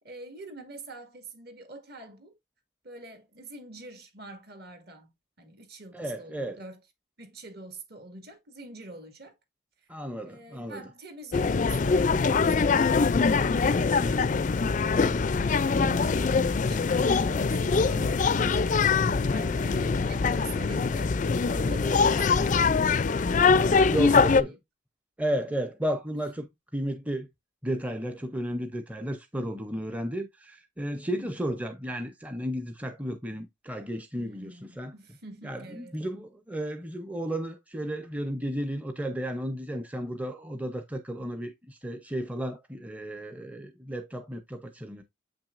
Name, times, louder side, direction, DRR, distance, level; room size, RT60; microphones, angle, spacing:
voice 1, 0.0-2.4 2.8-6.8 7.2-9.3 9.8-9.9 10.2-24.6 34.2-36.0, right 2 dB, 50° right, 1.9 m, -46 dB
voice 2, 5.9-6.6 9.9-10.8 23.9-24.5 25.2-27.3 27.6-34.9 35.4-45.0, equal, 5° right, 0.6 m, -33 dB
sound 1, 11.3-24.4, left 4 dB, 40° left, 0.4 m, -23 dB
sound 2, 14.4-21.7, equal, 90° right, 3.1 m, -49 dB
7.8 x 6.0 x 2.5 m
head